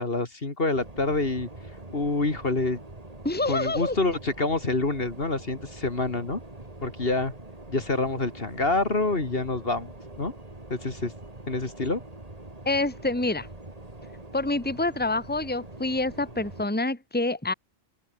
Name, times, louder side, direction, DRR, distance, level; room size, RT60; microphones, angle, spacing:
voice 1, 0.0-1.5 1.9-2.8 3.5-6.4 6.8-7.3 7.7-9.9 10.2-10.3 10.7-11.1 11.5-12.0, left 3 dB, 50° left, 2.8 m, -27 dB
sound 1, 0.7-16.7, right 2 dB, 30° right, 3.1 m, -44 dB
voice 2, 3.2-4.0 12.7-13.5 14.3-17.5, left 2 dB, 10° left, 2.1 m, -27 dB
open air
omnidirectional pair, 1.2 m